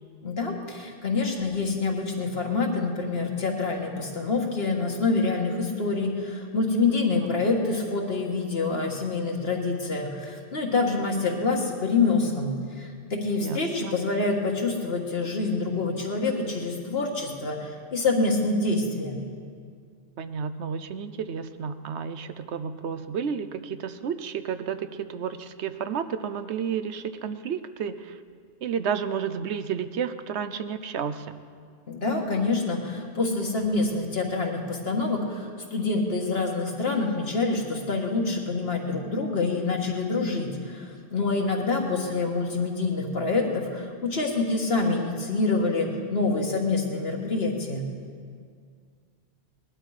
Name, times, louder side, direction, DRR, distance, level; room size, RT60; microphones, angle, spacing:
voice 1, 0.2-19.2 31.9-47.9, left 3 dB, 60° left, 1 dB, 1.9 m, -26 dB
voice 2, 13.4-14.0 20.2-28.2 28.6-31.3, right 7 dB, 75° right, 11 dB, 1.0 m, -31 dB
19.5 x 12.0 x 5.0 m, 2.1 s
omnidirectional pair, 1.2 m